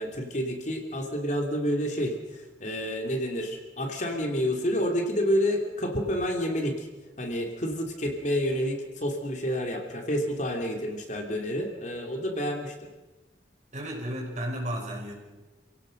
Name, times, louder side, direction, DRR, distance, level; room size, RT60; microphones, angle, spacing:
voice 1, 0.0-6.9 7.2-12.9, equal, 40° left, 2 dB, 3.0 m, -29 dB
voice 2, 13.7-15.1, equal, 40° right, -1 dB, 6.2 m, -33 dB
28.5 x 17.0 x 6.5 m, 1.1 s
head